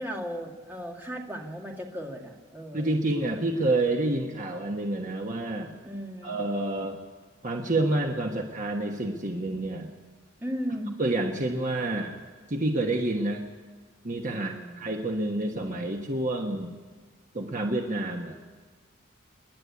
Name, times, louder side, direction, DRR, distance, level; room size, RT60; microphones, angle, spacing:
voice 1, 0.0-3.0 5.8-6.4 10.4-10.9 14.3-14.8, equal, 10° right, 0 dB, 2.2 m, -36 dB
voice 2, 2.7-5.7 6.2-7.0 7.4-9.9 11.0-12.1 12.5-13.4 14.0-16.7 17.3-18.4, right 2 dB, 35° right, 2 dB, 1.2 m, -28 dB
28.0 x 11.0 x 8.4 m, 1.4 s
head